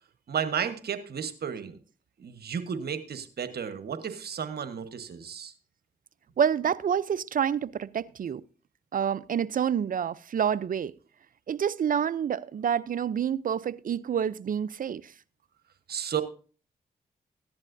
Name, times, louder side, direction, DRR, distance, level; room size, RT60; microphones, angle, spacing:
voice 1, 0.3-1.8 2.2-5.5 15.9-16.2, right 7 dB, 70° right, 1.2 m, -33 dB
voice 2, 6.4-8.4 8.9-10.9 11.5-15.1, right 8 dB, 55° right, 0.5 m, -28 dB
15.0 x 10.5 x 2.6 m
cardioid pair, 50°, 17 cm